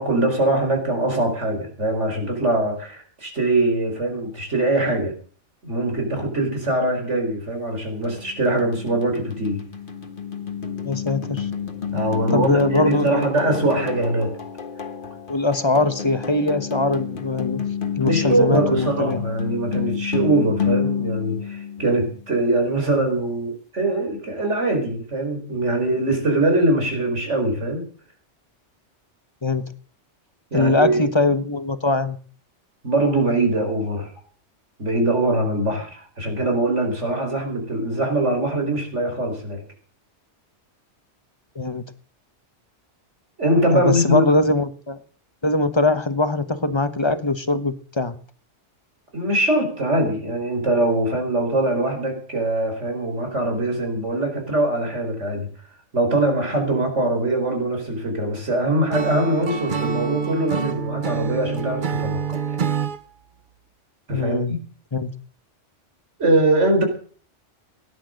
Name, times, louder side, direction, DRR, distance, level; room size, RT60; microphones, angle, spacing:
voice 1, 0.0-5.1 5.6-9.6 11.9-14.4 18.0-27.9 30.5-31.0 32.8-34.1 34.8-39.6 43.4-44.3 49.1-55.5 55.9-62.6 64.1-64.6 66.2-66.8, right 2 dB, 75° right, 4 dB, 4.9 m, -22 dB
sound 1, 8.0-22.2, left 7 dB, 45° left, 1.6 m, -29 dB
voice 2, 10.8-11.5 12.3-13.3 15.3-17.6 18.0-19.2 29.4-29.6 30.5-32.2 41.5-41.8 43.7-45.0 45.4-48.2 64.1-64.6 64.9-65.1, left 2 dB, 25° left, 11 dB, 1.1 m, -21 dB
Acoustic guitar / Strum, 58.9-63.0, right 7 dB, 45° right, 1.0 m, -26 dB
17.5 x 10.5 x 6.5 m, 0.43 s
omnidirectional pair, 1.2 m